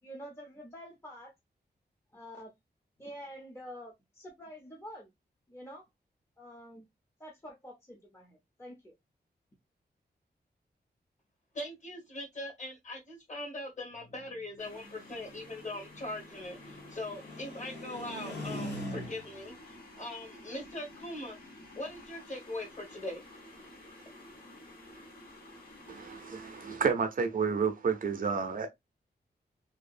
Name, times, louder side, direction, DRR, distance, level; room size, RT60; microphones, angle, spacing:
voice 1, 0.0-1.3 2.1-2.5 3.0-5.1 5.5-5.8 6.4-6.8 7.2-8.9, equal, 15° left, 0.6 m, -47 dB
voice 2, 11.5-21.4 21.7-23.2, left 1 dB, 45° left, 1.3 m, -41 dB
sound 1, 14.0-19.5, equal, 90° left, 1.9 m, -43 dB
sound 2, 14.6-26.8, left 1 dB, 60° left, 1.5 m, -52 dB
voice 3, 25.9-28.7, right 5 dB, 55° right, 0.5 m, -30 dB
2.7 x 2.3 x 2.4 m
wide cardioid pair, 180°, 17 cm